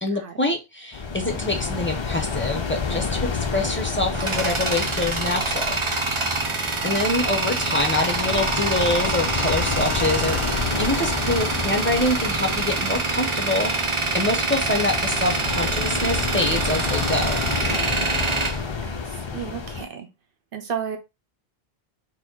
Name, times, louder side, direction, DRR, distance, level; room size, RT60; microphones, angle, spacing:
voice 1, 0.0-5.8 6.8-17.4, left 1 dB, 10° left, 0.8 m, -25 dB
sound 1, 0.9-19.9, left 5 dB, 40° left, 0.4 m, -30 dB
Tools, 4.1-19.5, right 3 dB, 30° right, 0.7 m, -26 dB
voice 2, 18.8-20.1 20.5-21.0, right 7 dB, 60° right, 1.0 m, -32 dB
4.1 x 2.2 x 4.6 m
omnidirectional pair, 1.1 m